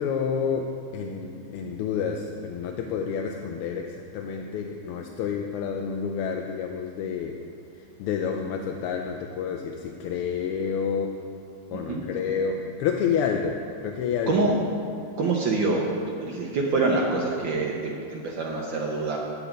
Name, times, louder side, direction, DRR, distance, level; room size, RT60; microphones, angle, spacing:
voice 1, 0.0-7.4 7.7-11.2 11.7-14.5, left 6 dB, 85° left, 3 dB, 1.5 m, -29 dB
voice 2, 11.7-12.0 14.3-14.5 15.2-15.9 16.2-19.2, right 3 dB, 65° right, -2 dB, 1.4 m, -25 dB
8.6 x 7.9 x 5.0 m, 2.5 s
omnidirectional pair, 2.4 m